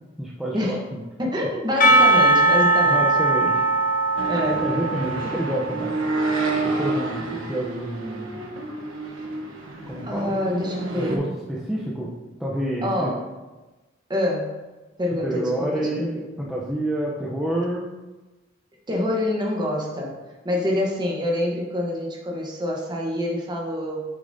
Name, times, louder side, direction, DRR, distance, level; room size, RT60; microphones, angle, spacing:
voice 1, 0.2-1.0 2.6-3.6 4.5-6.0 6.6-8.5 9.9-10.4 10.9-12.1 12.4-13.1 15.2-16.1 16.4-17.8, right 1 dB, 5° right, -5 dB, 0.7 m, -28 dB
voice 2, 1.2-3.0 4.3-4.6 10.0-11.2 12.8-13.2 14.1-14.6 15.0-16.1 18.9-20.1 20.4-24.0, left 1 dB, 20° right, -2 dB, 1.1 m, -26 dB
Percussion / Church bell, 1.8-6.6, right 2 dB, 45° left, 0.8 m, -20 dB
sound 1, 4.2-11.2, right 3 dB, 90° right, 1.1 m, -29 dB
8.6 x 6.9 x 2.7 m, 1.2 s
head